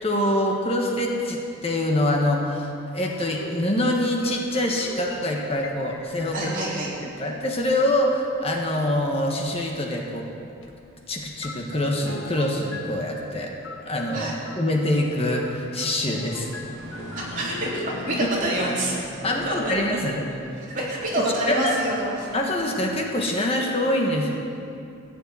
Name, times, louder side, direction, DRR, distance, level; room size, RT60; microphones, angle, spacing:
voice 1, 0.0-6.5 7.2-10.3 11.1-13.5 13.8-16.5 19.2-20.3 21.5-21.7 22.3-24.3, left 1 dB, 30° left, 0 dB, 1.4 m, -25 dB
sound 1, 3.0-7.3 10.6-10.7 11.4-18.4, left 2 dB, 60° left, 1.2 m, -42 dB
sound 2, 4.4-23.3, left 1 dB, 60° right, 3.6 m, -44 dB
voice 2, 6.3-6.9 14.1-14.3 17.1-19.0 19.4-19.7 20.7-22.3, right 1 dB, 40° right, -6 dB, 3.4 m, -27 dB
15.0 x 6.9 x 9.0 m, 2.6 s
head